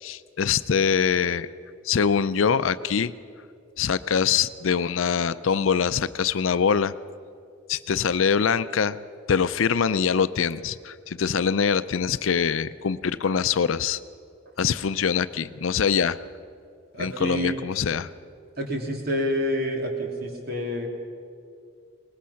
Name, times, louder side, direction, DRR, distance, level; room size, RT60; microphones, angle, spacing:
voice 1, 0.0-1.5 1.8-3.1 3.8-6.9 7.7-9.0 9.3-14.0 14.6-16.2 17.0-18.1, left 6 dB, 85° left, 14 dB, 0.5 m, -23 dB
voice 2, 16.9-17.6 18.6-20.9, equal, 50° right, 1 dB, 3.0 m, -28 dB
23.0 x 20.0 x 5.8 m, 2.4 s
head